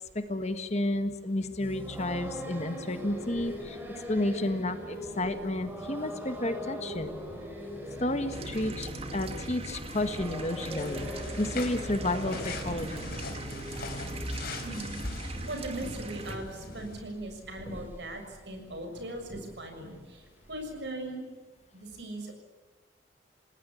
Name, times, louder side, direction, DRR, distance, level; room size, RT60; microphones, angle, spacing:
voice 1, 0.1-7.1 8.0-13.0, left 1 dB, 35° left, 9 dB, 1.5 m, -31 dB
sound 1, 1.6-20.8, equal, 10° right, 5.2 m, -41 dB
sound 2, 8.3-16.4, right 2 dB, 30° right, 2.3 m, -40 dB
sound 3, 10.8-17.0, left 3 dB, 50° left, 3.9 m, -42 dB
voice 2, 14.6-21.2 21.7-22.4, right 1 dB, 60° right, 5 dB, 6.7 m, -40 dB
29.0 x 19.0 x 8.5 m, 1.2 s
head